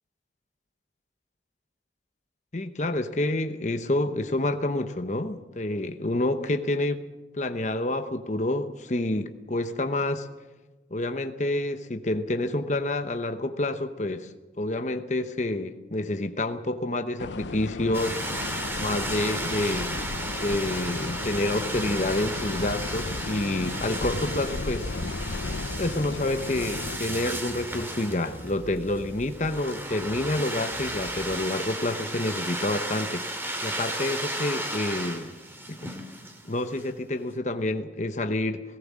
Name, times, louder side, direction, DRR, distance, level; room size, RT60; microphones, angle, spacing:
voice 1, 2.5-7.0 7.3-10.3 10.9-14.3 14.6-18.2 18.8-19.9 20.3-24.9 25.8-35.3 35.7-35.9 36.4-38.6, left 1 dB, 40° left, 8 dB, 0.9 m, -28 dB
sound 1, 17.2-27.0, left 3 dB, 80° left, 0.7 m, -34 dB
sound 2, 17.9-36.9, right 1 dB, 15° right, 2.4 m, -34 dB
sound 3, 24.0-31.4, equal, 10° left, 3.3 m, -45 dB
19.0 x 18.0 x 7.5 m, 1.2 s
head